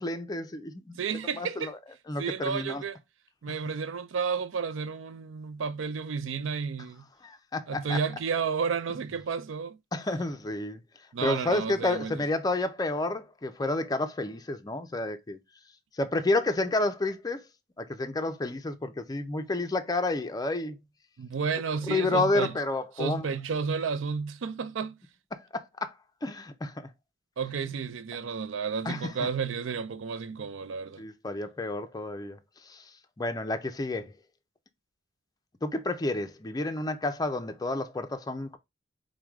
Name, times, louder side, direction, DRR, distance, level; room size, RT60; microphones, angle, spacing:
voice 1, 0.0-0.9 1.4-1.8 2.1-2.8 7.2-8.0 9.9-10.8 11.2-15.4 16.0-17.4 17.8-20.8 21.9-23.3 25.5-25.9 26.2-26.8 28.9-29.3 31.0-32.4 32.7-32.8 33.2-34.1 35.6-38.6, left 2 dB, 20° left, 0.4 m, -30 dB
voice 2, 1.0-1.7 2.2-3.0 3.4-7.1 7.7-9.8 11.1-12.2 21.2-22.5 23.0-25.0 27.4-31.0, right 5 dB, 80° right, 0.4 m, -32 dB
4.6 x 2.2 x 3.5 m
head